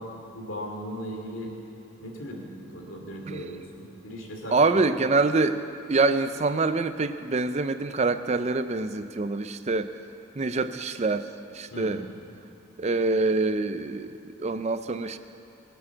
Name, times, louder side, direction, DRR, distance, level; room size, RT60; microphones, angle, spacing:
voice 1, 0.0-1.5 2.0-4.6 11.7-12.0, equal, 70° left, 0 dB, 2.9 m, -38 dB
voice 2, 4.5-9.9 10.3-12.1 12.8-15.2, right 3 dB, 30° right, 11 dB, 0.5 m, -25 dB
22.5 x 7.8 x 7.2 m, 2.6 s
head